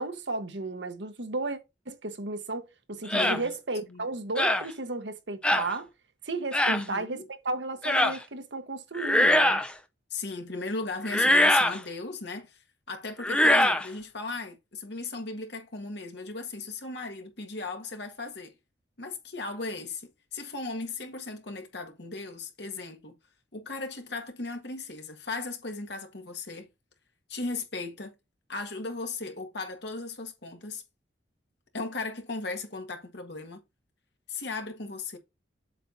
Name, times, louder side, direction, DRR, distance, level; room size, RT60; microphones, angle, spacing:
voice 1, 0.0-1.6 1.9-5.9 6.2-9.6, right 3 dB, 70° right, 1.1 m, -34 dB
voice 2, 3.1-3.5 3.9-4.1 6.7-7.3 10.1-18.5 19.0-23.2 23.5-26.7 27.3-28.1 28.5-30.8 31.7-33.6 34.3-35.2, left 3 dB, 60° left, 1.7 m, -36 dB
sound 1, 3.1-3.4 4.4-4.7 5.4-5.7 6.5-6.8 7.8-8.2 8.9-9.7 11.0-11.8 13.2-13.9, left 1 dB, 5° left, 0.6 m, -22 dB
7.7 x 6.1 x 2.7 m
head